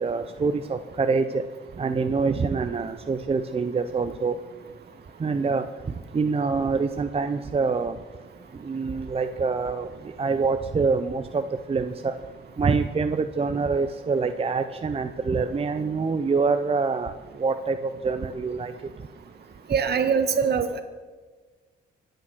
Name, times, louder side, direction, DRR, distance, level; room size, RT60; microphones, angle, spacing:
voice 1, 0.0-1.4 1.8-4.4 5.2-5.6 6.1-8.0 8.6-9.9 10.2-12.1 12.6-17.1 17.4-18.7, right 4 dB, 30° right, 8 dB, 0.8 m, -25 dB
voice 2, 19.7-20.8, right 6 dB, 55° right, 9 dB, 1.8 m, -23 dB
24.5 x 9.2 x 6.2 m, 1.4 s
cardioid pair, 90°, 20 cm